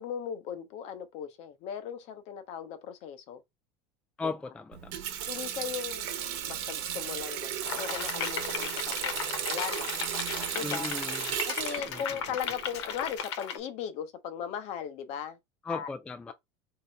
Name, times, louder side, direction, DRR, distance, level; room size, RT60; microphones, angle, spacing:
voice 1, 0.0-3.4 4.2-4.3 5.3-6.1 6.4-9.2 9.5-9.9 10.5-10.9 11.5-15.4 15.7-15.9, left 8 dB, 50° left, 0.8 m, -38 dB
voice 2, 4.2-4.9 10.6-11.2 11.9-12.0 15.7-16.3, left 4 dB, 10° left, 0.3 m, -36 dB
Water tap faucet, 4.7-13.2, right 10 dB, 65° right, 1.1 m, -35 dB
sound 1, 7.6-13.6, left 8 dB, 85° left, 1.0 m, -36 dB
3.4 x 2.8 x 4.4 m
supercardioid pair, 150°, 14 cm